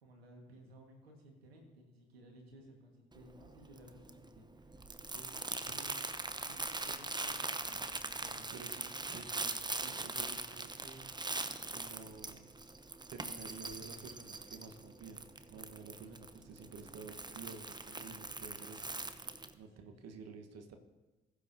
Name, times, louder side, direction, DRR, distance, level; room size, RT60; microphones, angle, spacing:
voice 1, 0.0-6.1 6.3-8.5 17.9-18.1 19.8-20.0, right 1 dB, 85° right, 1 dB, 1.8 m, -58 dB
Crumpling crinkling, 3.1-19.5, right 3 dB, 15° right, 0.9 m, -42 dB
voice 2, 8.5-11.4 11.7-12.5 13.1-20.8, right 5 dB, 60° right, 5 dB, 1.4 m, -51 dB
20.0 x 8.3 x 2.8 m, 1.2 s
figure-of-eight pair, 45°, 30 cm